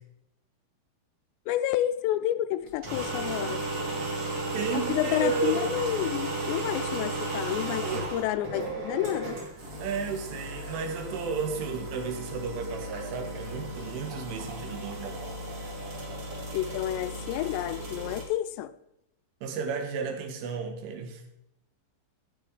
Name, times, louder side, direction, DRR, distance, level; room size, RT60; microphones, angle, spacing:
voice 1, 1.5-3.6 4.7-9.4 16.5-18.7, left 13 dB, 85° left, 2.4 m, -30 dB
sound 1, 2.7-18.2, right 2 dB, 40° right, 2.7 m, -35 dB
voice 2, 4.2-5.6 7.8-8.1 9.8-15.2 19.4-21.2, right 5 dB, 90° right, 4.0 m, -33 dB
14.5 x 7.7 x 4.8 m
omnidirectional pair, 5.5 m